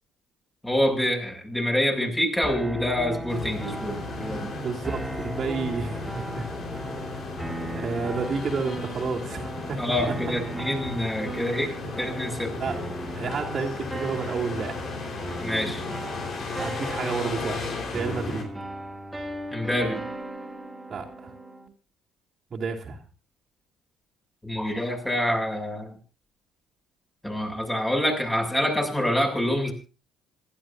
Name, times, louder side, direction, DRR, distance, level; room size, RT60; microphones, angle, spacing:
voice 1, 0.6-4.5 9.8-11.7 12.0-12.5 15.4-15.8 19.5-20.0 24.4-25.9 27.2-29.7, left 1 dB, 10° left, 3 dB, 6.9 m, -26 dB
sound 1, 2.4-21.7, right 1 dB, 5° right, 4.3 m, -37 dB
sound 2, 3.3-18.4, left 4 dB, 45° left, 4.3 m, -35 dB
voice 2, 4.3-6.5 7.7-10.0 11.5-11.9 12.6-12.8 13.1-14.8 16.5-18.5 20.9-21.3 22.5-23.0, right 5 dB, 40° right, -2 dB, 2.9 m, -31 dB
27.0 x 12.5 x 2.7 m, 0.35 s
figure-of-eight pair, 50°, 0 cm